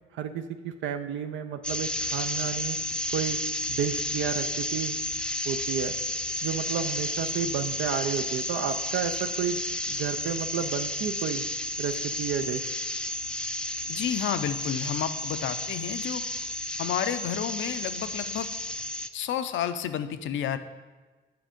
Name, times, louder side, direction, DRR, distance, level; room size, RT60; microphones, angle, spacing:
voice 1, 0.1-2.8 3.1-3.4 3.7-5.0 5.5-5.9 6.4-9.6 9.9-11.4 11.8-12.7, right 8 dB, 75° right, 7 dB, 0.5 m, -31 dB
sound 1, 1.6-19.1, left 1 dB, 5° left, 0.4 m, -32 dB
voice 2, 13.9-16.2 16.8-18.5 19.1-20.6, left 9 dB, 75° left, 10 dB, 0.6 m, -30 dB
7.7 x 6.1 x 5.1 m, 1.3 s
cardioid pair, 90°, 20 cm